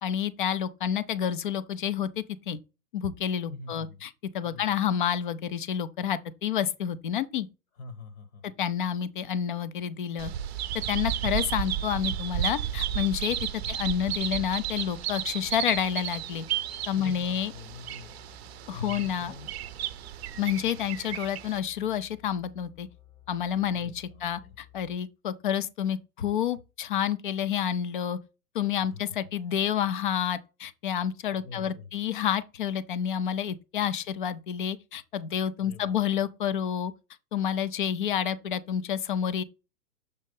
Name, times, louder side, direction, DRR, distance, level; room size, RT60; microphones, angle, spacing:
voice 1, 0.0-2.6 2.9-7.5 8.4-10.3 10.9-13.4 13.7-16.5 16.9-17.5 18.7-19.3 20.4-22.9 23.3-28.2 28.5-36.9 37.3-39.4, left 9 dB, 35° left, 0.4 m, -29 dB
voice 2, 3.5-4.0 4.4-4.8 7.8-8.5 13.6-13.8 17.0-18.1 18.7-19.5 23.7-24.5 28.8-29.0 31.3-31.9 35.6-36.0, left 4 dB, 60° left, 1.2 m, -44 dB
Bird vocalization bird call bird song, 10.2-21.6, right 11 dB, 45° right, 0.6 m, -33 dB
sound 1, 11.5-25.0, left 9 dB, 80° left, 2.1 m, -55 dB
6.6 x 3.0 x 5.2 m
hypercardioid pair, 140°, 47 cm